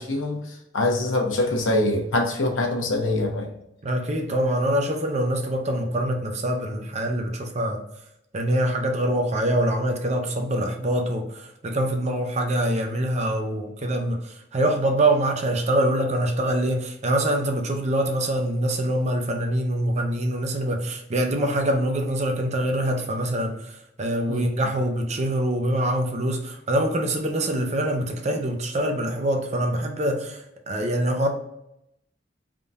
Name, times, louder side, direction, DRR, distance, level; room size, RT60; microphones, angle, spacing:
voice 1, 0.0-3.5 24.3-24.4, left 2 dB, 90° left, 2 dB, 0.8 m, -24 dB
voice 2, 3.8-7.8 8.3-31.3, right 1 dB, 35° right, 4 dB, 0.6 m, -24 dB
3.6 x 2.7 x 3.5 m, 0.81 s
head